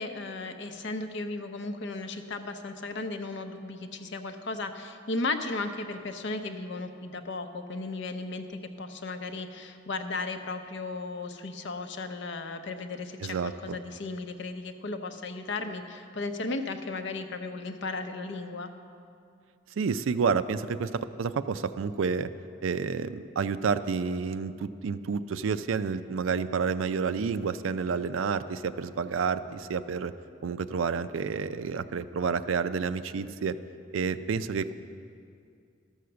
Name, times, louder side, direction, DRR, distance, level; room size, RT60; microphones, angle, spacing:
voice 1, 0.0-13.4 13.6-18.7, left 3 dB, 60° left, 8 dB, 0.7 m, -35 dB
voice 2, 13.2-13.8 19.8-22.3 22.6-30.1 30.4-33.6 33.9-34.7, right 5 dB, 75° right, 13 dB, 0.4 m, -29 dB
12.5 x 6.4 x 6.8 m, 2.4 s
head